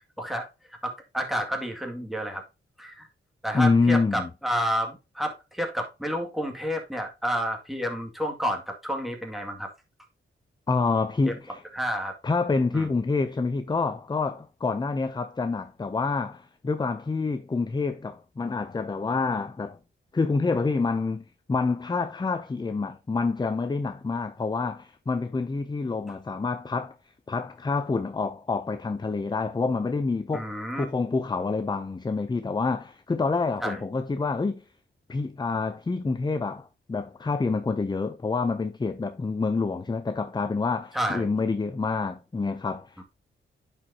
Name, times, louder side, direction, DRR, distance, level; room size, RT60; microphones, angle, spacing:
voice 1, 0.2-0.5 0.8-2.4 2.8-3.1 3.4-9.7 11.3-11.4 11.7-12.2 12.7-12.9 30.3-30.8 33.6-33.8 40.9-41.3 43.0-43.1, equal, ahead, 2.1 m, -30 dB
voice 2, 3.5-4.3 10.7-11.6 12.2-19.8 20.1-27.0 27.3-34.6 35.1-43.0, left 4 dB, 20° left, 0.5 m, -27 dB
10.5 x 4.8 x 2.8 m
cardioid pair, 70°, 21 cm